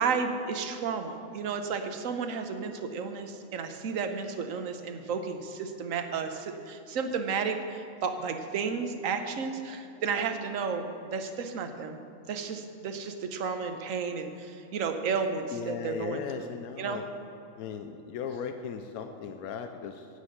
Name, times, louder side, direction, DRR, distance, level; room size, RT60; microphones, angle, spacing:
voice 1, 0.0-12.0 12.3-16.5 16.8-17.0, right 5 dB, 65° right, 6 dB, 1.2 m, -32 dB
voice 2, 15.5-17.1 17.5-20.1, left 7 dB, 90° left, 7 dB, 1.1 m, -37 dB
9.9 x 8.6 x 6.5 m, 2.8 s
omnidirectional pair, 1.5 m